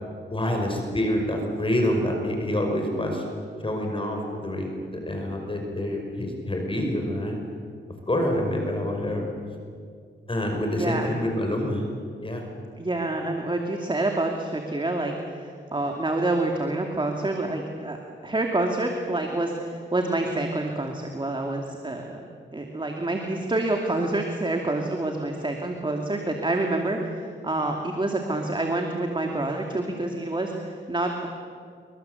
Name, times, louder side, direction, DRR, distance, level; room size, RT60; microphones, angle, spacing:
voice 1, 0.3-3.2 3.6-7.4 8.1-9.2 10.3-11.8 12.2-12.4, left 1 dB, 25° left, 2 dB, 5.4 m, -27 dB
voice 2, 10.8-11.1 12.8-18.0 18.2-31.3, right 2 dB, 25° right, 2 dB, 2.6 m, -27 dB
28.0 x 23.5 x 8.1 m, 2.2 s
wide cardioid pair, 90°, 19 cm